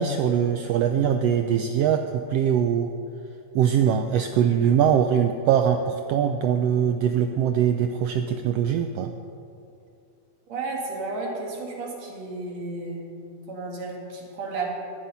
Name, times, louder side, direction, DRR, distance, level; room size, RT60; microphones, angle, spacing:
voice 1, 0.0-2.9 3.5-9.1, right 8 dB, 90° right, 6 dB, 1.4 m, -22 dB
voice 2, 10.5-13.0 13.5-14.7, right 3 dB, 60° right, -2 dB, 3.2 m, -32 dB
14.5 x 11.0 x 5.5 m, 2.6 s
omnidirectional pair, 3.4 m